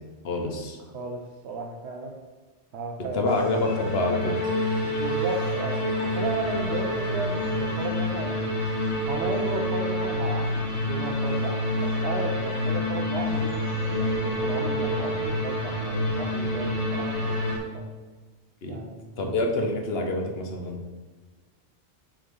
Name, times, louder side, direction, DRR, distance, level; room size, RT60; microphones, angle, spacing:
voice 1, 0.2-0.8 3.1-4.3 18.6-18.8 19.2-20.8, left 2 dB, 60° left, 3 dB, 1.2 m, -27 dB
voice 2, 0.9-2.1 2.7-3.4 4.8-8.4 9.1-10.6 10.9-13.6 13.9-17.8 18.7-19.2, right 3 dB, 70° right, 1 dB, 0.9 m, -34 dB
sound 1, 3.3-17.6, left 1 dB, 30° left, 1.8 m, -27 dB
6.5 x 3.7 x 5.3 m, 1.3 s
omnidirectional pair, 1.2 m